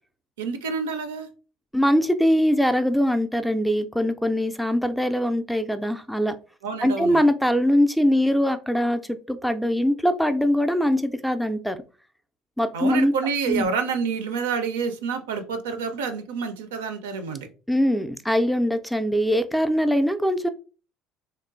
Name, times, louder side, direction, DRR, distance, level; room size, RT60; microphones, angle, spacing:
voice 1, 0.4-1.3 6.6-7.2 12.7-17.5, right 5 dB, 75° right, 7 dB, 0.4 m, -28 dB
voice 2, 1.7-6.3 6.8-9.0 9.3-11.8 12.6-13.1 13.5-13.7 17.7-20.5, equal, ahead, 9 dB, 0.3 m, -22 dB
2.9 x 2.2 x 2.4 m, 0.35 s
hypercardioid pair, 65°, 0 cm